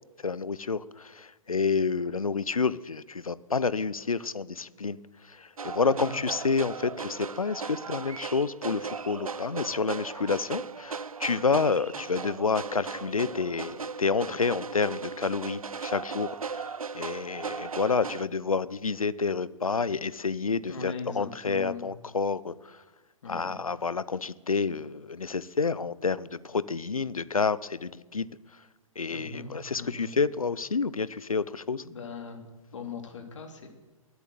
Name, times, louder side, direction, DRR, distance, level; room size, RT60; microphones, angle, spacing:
voice 1, 0.2-5.0 5.2-16.7 16.9-22.8 23.3-28.3 29.0-31.8, left 4 dB, 80° left, 18 dB, 0.7 m, -29 dB
sound 1, 5.6-18.3, right 5 dB, 80° right, 0.5 m, -37 dB
voice 2, 5.8-6.2 10.0-10.1 20.7-21.9 23.2-23.6 29.1-30.1 31.8-32.4 32.7-33.7, left 4 dB, 60° left, 5 dB, 2.9 m, -40 dB
22.5 x 8.2 x 7.7 m, 1.2 s
figure-of-eight pair, 120°, 18 cm